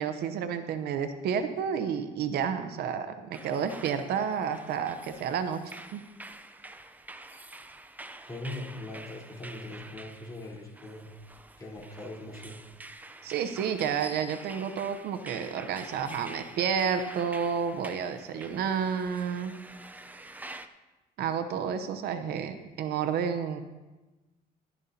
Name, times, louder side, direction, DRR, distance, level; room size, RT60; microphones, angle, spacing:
voice 1, 0.0-6.0 13.2-19.5 21.2-23.6, right 7 dB, 70° right, 9 dB, 0.8 m, -30 dB
sound 1, 3.3-20.7, right 2 dB, 10° right, 0.6 m, -47 dB
voice 2, 8.3-11.1 11.6-12.6, left 1 dB, 20° left, -4 dB, 3.8 m, -40 dB
15.0 x 12.0 x 2.8 m, 1.1 s
cardioid pair, 110°, 17 cm